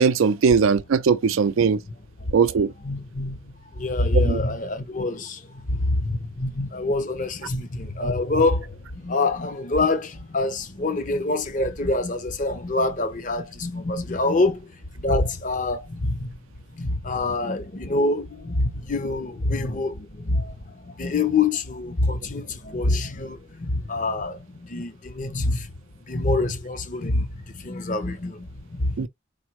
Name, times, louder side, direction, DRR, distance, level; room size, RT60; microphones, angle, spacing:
voice 1, 0.0-1.8 2.3-2.7 4.1-4.4 29.0-29.1, right 5 dB, 85° right, 0.4 m, -19 dB
voice 2, 1.5-2.3 2.8-16.4 16.7-25.7 26.1-29.1, left 2 dB, 40° left, 0.6 m, -26 dB
4.4 x 2.1 x 4.5 m
head